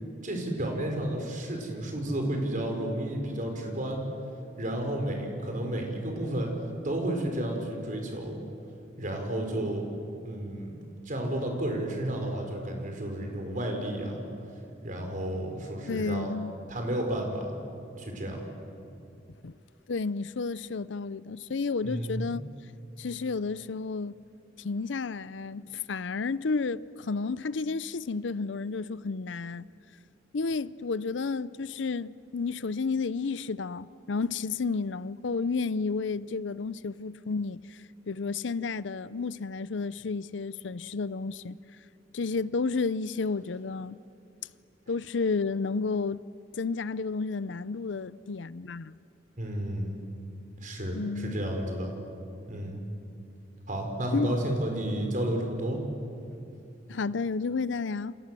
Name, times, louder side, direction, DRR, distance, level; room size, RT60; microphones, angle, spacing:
voice 1, 0.2-4.0 4.6-6.5 6.8-8.4 9.0-9.8 10.2-10.8 11.0-14.2 14.8-16.3 16.7-17.5 18.0-18.4 21.8-22.3 49.4-50.0 50.6-51.9 52.5-52.8 53.7-55.8, right 1 dB, 45° right, 4.8 m, -32 dB
voice 2, 15.9-16.6 19.4-19.5 19.9-22.4 23.0-24.2 24.6-29.7 30.3-41.6 42.1-44.0 44.9-46.2 46.6-49.0 50.9-51.4 54.1-54.4 56.9-58.2, left 4 dB, 75° left, 0.6 m, -31 dB
29.0 x 27.0 x 7.7 m
head